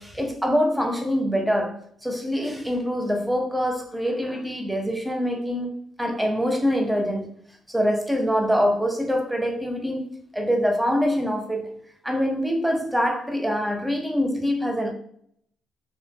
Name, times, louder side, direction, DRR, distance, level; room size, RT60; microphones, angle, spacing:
voice 1, 0.0-5.7 6.0-7.3 7.7-10.0 10.3-11.7 12.0-14.9, equal, 5° right, 0.5 m, -24 dB
2.5 x 2.1 x 2.6 m
cardioid pair, 90°, 0 cm